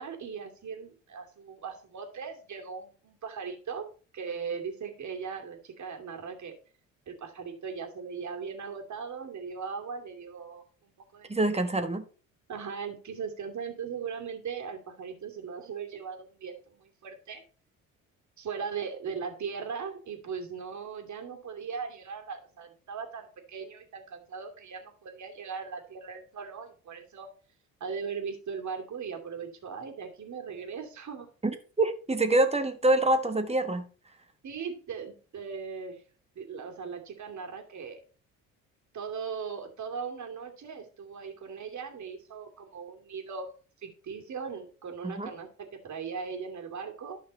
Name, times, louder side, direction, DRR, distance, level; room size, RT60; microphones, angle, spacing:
voice 1, 0.0-3.9 4.1-6.6 7.1-11.3 12.5-17.4 18.4-27.3 27.8-31.3 34.4-36.0 36.4-38.0 38.9-43.5 43.8-47.2, right 6 dB, 45° right, 2.6 m, -39 dB
voice 2, 11.3-12.0 31.4-33.8 45.0-45.3, right 2 dB, 15° right, 1.5 m, -26 dB
12.0 x 5.7 x 4.3 m
hypercardioid pair, 60°, 39 cm